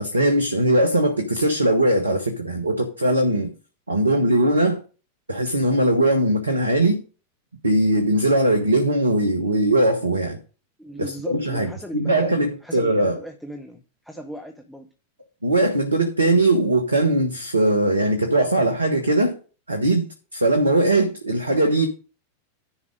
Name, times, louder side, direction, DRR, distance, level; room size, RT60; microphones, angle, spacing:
voice 1, 0.0-3.5 3.9-4.8 5.3-7.0 7.6-10.4 11.0-13.2 15.4-19.4 19.7-21.9, right 1 dB, 80° right, 1.0 m, -20 dB
voice 2, 10.8-14.9, equal, ahead, 1.1 m, -37 dB
10.5 x 5.2 x 5.1 m
figure-of-eight pair, 90°, 0 cm